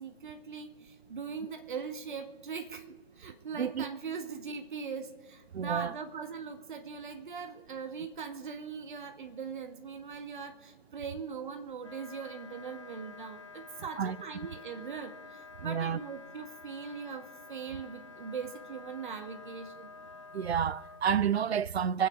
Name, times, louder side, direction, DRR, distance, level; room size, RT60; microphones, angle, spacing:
voice 1, 0.0-2.9 3.2-19.9, right 5 dB, 50° right, 1.8 m, -41 dB
voice 2, 3.5-3.9 5.5-5.9 14.0-14.2 15.6-16.0 20.3-22.1, right 8 dB, 80° right, 0.6 m, -29 dB
Wind instrument woodwind instrument, 11.8-21.0, left 4 dB, 30° left, 0.4 m, -50 dB
25.0 x 9.8 x 3.7 m
figure-of-eight pair, 150°, 32 cm